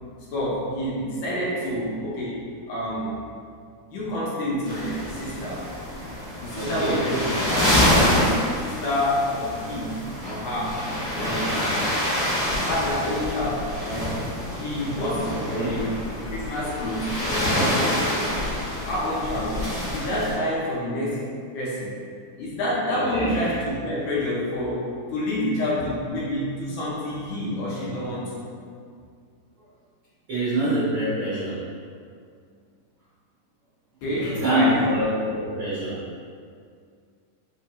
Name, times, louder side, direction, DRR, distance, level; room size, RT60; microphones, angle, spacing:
voice 1, 0.3-3.2 3.9-5.7 6.4-11.6 12.6-18.4 18.8-21.3 21.5-22.0 22.4-28.4 34.0-34.9, left 1 dB, 80° left, -7 dB, 1.9 m, -28 dB
sound 1, 4.6-20.3, left 1 dB, 45° left, 1.0 m, -26 dB
voice 2, 6.5-7.0 15.2-15.7 22.9-23.3 30.3-31.6 34.2-36.0, right 1 dB, 85° right, -12 dB, 1.1 m, -25 dB
5.2 x 2.8 x 2.4 m, 2.1 s
omnidirectional pair, 3.8 m